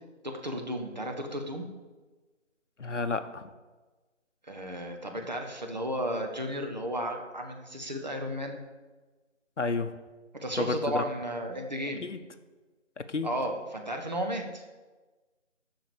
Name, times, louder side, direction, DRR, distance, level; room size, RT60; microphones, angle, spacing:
voice 1, 0.2-1.7 4.4-8.6 10.3-12.1 13.2-14.6, equal, 35° right, 3 dB, 1.0 m, -33 dB
voice 2, 2.8-3.5 9.6-9.9 10.6-11.1 12.0-12.2 13.0-13.3, left 4 dB, 70° left, 9 dB, 0.8 m, -31 dB
7.4 x 5.8 x 7.0 m, 1.3 s
figure-of-eight pair, 165°, 38 cm